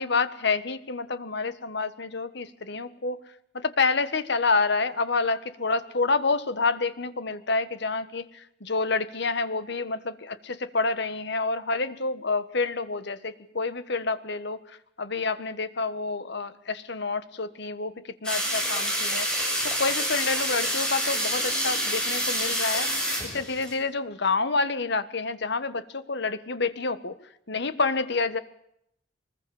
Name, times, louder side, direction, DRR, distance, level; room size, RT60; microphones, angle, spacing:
voice 1, 0.0-3.2 3.5-14.6 15.0-17.9 18.2-19.3 19.6-22.9 23.2-27.1 27.5-28.4, left 4 dB, 65° left, 13 dB, 1.4 m, -28 dB
sound 1, 18.2-23.7, equal, 5° left, 7.7 m, -27 dB
24.0 x 20.5 x 7.2 m, 0.75 s
head